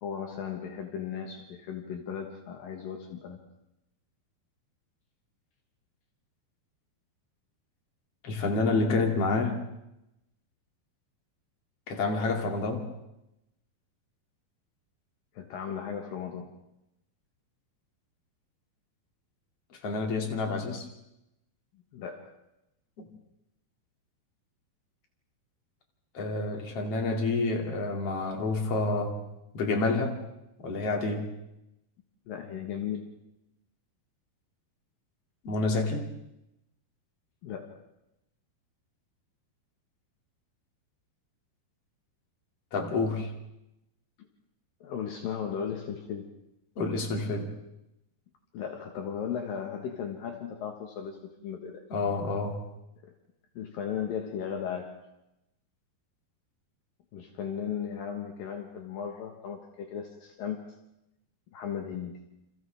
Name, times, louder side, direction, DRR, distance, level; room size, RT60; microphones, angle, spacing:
voice 1, 0.0-3.4 15.3-16.5 21.9-22.3 32.3-33.1 37.4-37.8 44.8-46.3 48.5-51.8 53.0-53.1 53.6-55.0 57.1-60.6 61.5-62.2, left 8 dB, 70° left, 3 dB, 3.1 m, -36 dB
voice 2, 8.2-9.6 11.9-12.8 19.8-20.9 23.0-23.1 26.1-29.2 29.5-30.2 30.6-31.3 35.4-36.1 42.7-43.3 46.8-47.5 51.9-52.6, left 3 dB, 40° left, 2 dB, 3.4 m, -28 dB
29.0 x 28.0 x 3.5 m, 0.88 s
omnidirectional pair, 4.4 m